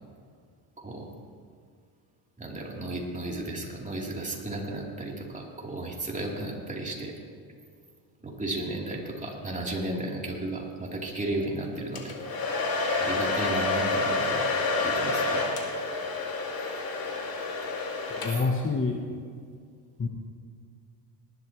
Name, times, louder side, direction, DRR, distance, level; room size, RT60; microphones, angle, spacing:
voice 1, 0.8-1.1 2.4-7.1 8.2-12.2 13.0-14.5 14.8-15.4 18.3-18.4, right 1 dB, 15° right, -3 dB, 3.5 m, -34 dB
Domestic sounds home sounds, 12.0-18.7, left 3 dB, 45° left, 2.5 m, -29 dB
voice 2, 18.1-19.0 20.0-20.1, left 4 dB, 25° left, 2 dB, 1.2 m, -27 dB
19.0 x 12.0 x 3.2 m, 2.2 s
supercardioid pair, 85°, 49 cm